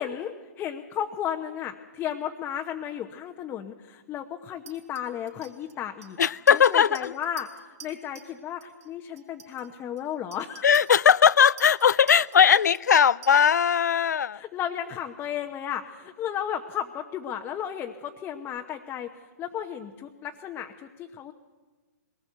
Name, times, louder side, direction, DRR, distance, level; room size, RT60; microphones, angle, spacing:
voice 1, 0.0-6.2 6.5-10.7 14.3-19.1 19.4-21.3, left 9 dB, 20° left, 3 dB, 1.0 m, -34 dB
Chink clink, 4.7-8.3 8.6-8.9 9.2-13.7, right 8 dB, 65° right, 3.6 m, -49 dB
voice 2, 6.2-7.1 10.6-14.4, left 7 dB, 80° left, 20 dB, 0.6 m, -19 dB
21.5 x 19.0 x 8.0 m, 1.3 s
hypercardioid pair, 140°, 9 cm